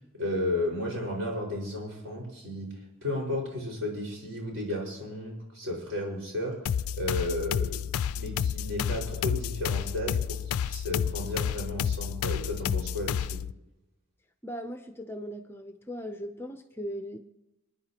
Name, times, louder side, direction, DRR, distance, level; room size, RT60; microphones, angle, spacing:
voice 1, 0.1-2.7 3.0-6.6 6.9-7.9 8.1-13.4, left 1 dB, 60° right, -2 dB, 5.0 m, -33 dB
sound 1, 6.7-13.5, left 8 dB, 85° left, 0.3 m, -30 dB
voice 2, 14.4-17.2, equal, 10° left, 7 dB, 0.5 m, -38 dB
26.5 x 10.0 x 2.9 m, 0.98 s
head